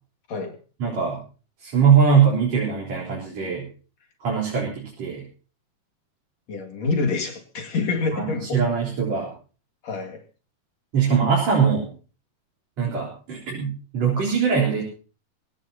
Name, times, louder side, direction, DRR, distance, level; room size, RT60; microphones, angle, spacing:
voice 1, 0.8-1.2 1.6-3.7 4.2-5.2 8.1-9.3 10.9-11.9 12.8-14.8, right 6 dB, 60° right, -4 dB, 5.2 m, -21 dB
voice 2, 6.5-8.6 9.8-10.2, left 4 dB, 60° left, 2 dB, 3.4 m, -27 dB
22.5 x 18.0 x 2.9 m, 0.38 s
omnidirectional pair, 3.4 m